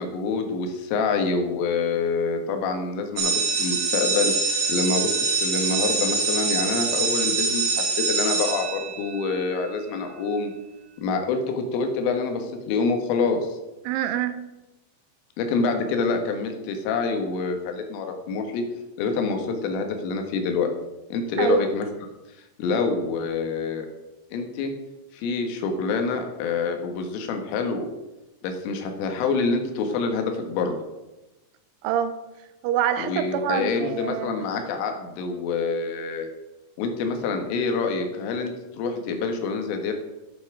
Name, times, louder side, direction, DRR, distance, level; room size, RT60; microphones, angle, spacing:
voice 1, 0.0-10.5 11.0-13.6 15.4-18.6 19.0-20.7 21.1-21.9 22.6-23.9 24.3-24.7 25.1-27.9 28.4-30.8 33.0-36.3 36.8-39.9, left 4 dB, 85° left, 5 dB, 4.1 m, -26 dB
sound 1, 3.2-9.3, right 4 dB, 55° right, 3.2 m, -24 dB
voice 2, 13.8-14.4 21.4-21.7 31.8-32.1 32.6-34.5, right 10 dB, 85° right, 11 dB, 3.1 m, -25 dB
11.5 x 8.6 x 4.9 m, 1.0 s
omnidirectional pair, 5.6 m